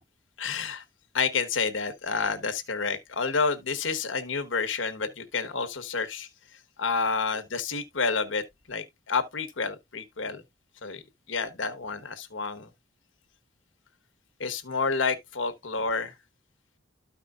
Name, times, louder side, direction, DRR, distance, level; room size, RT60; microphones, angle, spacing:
voice 1, 0.4-0.8 1.1-6.3 6.8-10.4 10.8-11.0 11.3-12.7 14.4-16.1, left 4 dB, 80° left, 1.3 m, -29 dB
13.5 x 5.0 x 2.5 m
head